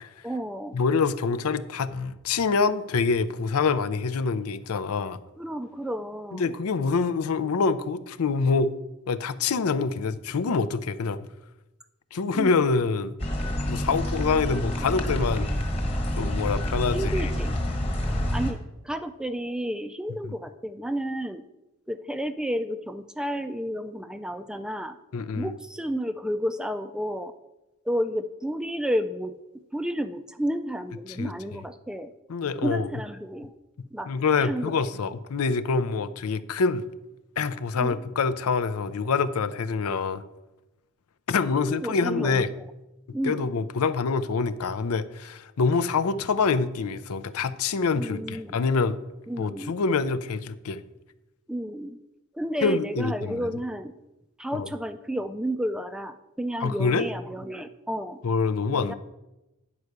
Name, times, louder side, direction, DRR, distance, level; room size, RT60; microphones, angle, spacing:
voice 1, 0.2-0.8 5.4-6.5 12.3-12.6 16.9-17.6 18.3-18.6 18.8-21.4 21.9-25.0 25.4-27.3 27.9-29.3 29.7-32.1 32.6-33.5 33.9-34.1 34.4-34.7 37.8-38.1 41.6-42.7 43.1-43.5 47.9-48.6 49.3-49.8 51.5-52.0 52.3-53.9 54.4-58.2 58.7-58.9, equal, 5° right, 10 dB, 0.3 m, -31 dB
voice 2, 0.7-5.2 6.3-8.7 9.1-11.3 12.1-13.1 13.7-15.5 16.2-17.1 25.1-25.5 31.2-31.3 32.3-32.9 34.1-36.8 37.4-40.2 41.3-42.5 43.2-49.0 49.4-50.8 52.6-53.5 54.5-54.7 56.6-57.1 58.2-58.9, left 4 dB, 90° left, 13 dB, 0.5 m, -26 dB
sound 1, 13.2-18.5, equal, 25° left, 1.3 m, -28 dB
9.6 x 4.7 x 6.6 m, 0.97 s
head